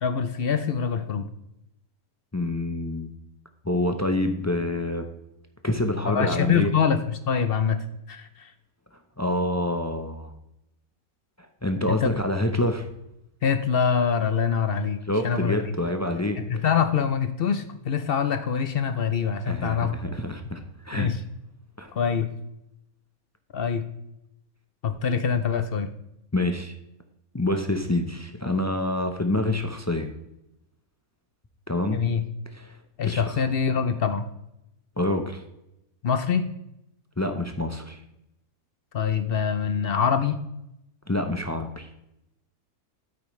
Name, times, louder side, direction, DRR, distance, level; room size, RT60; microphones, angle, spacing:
voice 1, 0.0-1.3 6.1-8.5 12.0-12.1 13.4-15.0 15.2-15.6 16.4-19.9 20.9-21.2 21.9-22.3 23.5-23.8 24.8-25.9 31.9-32.2 33.0-34.3 36.0-36.5 38.9-40.4, left 6 dB, 55° left, 10 dB, 0.7 m, -24 dB
voice 2, 2.3-3.1 3.6-5.0 5.6-6.7 9.2-10.3 11.6-12.9 15.1-16.4 19.5-21.1 21.8-21.9 26.3-26.7 27.3-30.1 31.7-32.0 32.5-32.8 33.0-33.4 35.0-35.4 37.2-38.0 41.1-41.9, left 1 dB, 25° left, 6 dB, 0.3 m, -27 dB
9.2 x 8.5 x 3.1 m, 0.84 s
omnidirectional pair, 1.5 m